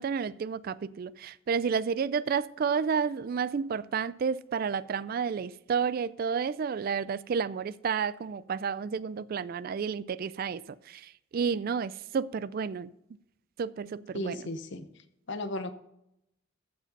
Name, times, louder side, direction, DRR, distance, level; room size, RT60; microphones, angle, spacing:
voice 1, 0.0-12.9 13.6-14.4, right 6 dB, 45° right, 0.3 m, -31 dB
voice 2, 14.1-14.9 15.3-15.7, left 1 dB, 60° left, 0.8 m, -35 dB
14.5 x 5.0 x 5.3 m
head